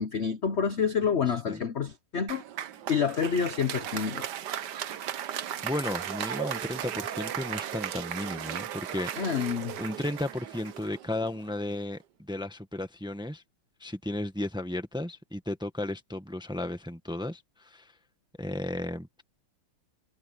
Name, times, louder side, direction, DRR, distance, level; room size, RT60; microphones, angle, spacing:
voice 1, 0.0-2.4 2.9-4.3 9.2-9.7, left 6 dB, 55° left, 0.7 m, -28 dB
Applause, 2.3-11.6, right 10 dB, 60° right, 1.3 m, -36 dB
voice 2, 5.6-9.5 9.8-13.4 13.8-17.9 18.4-19.1, left 1 dB, 5° right, 1.0 m, -34 dB
omnidirectional pair, 2.4 m